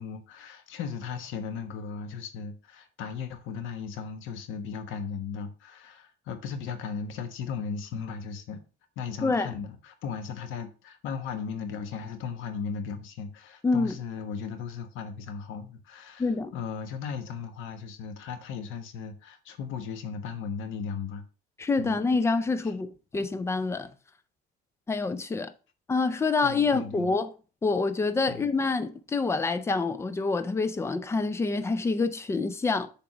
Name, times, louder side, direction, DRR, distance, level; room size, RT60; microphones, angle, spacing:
voice 1, 0.0-8.6 9.0-16.3 16.5-21.2 21.8-22.0 26.4-27.1 28.3-28.5, left 6 dB, 75° left, 1.3 m, -36 dB
voice 2, 9.2-9.6 13.6-13.9 16.2-16.5 21.6-23.9 24.9-25.5 25.9-27.3 27.6-32.9, left 3 dB, 15° left, 0.5 m, -27 dB
6.9 x 3.7 x 6.0 m
cardioid pair, 170°, 21 cm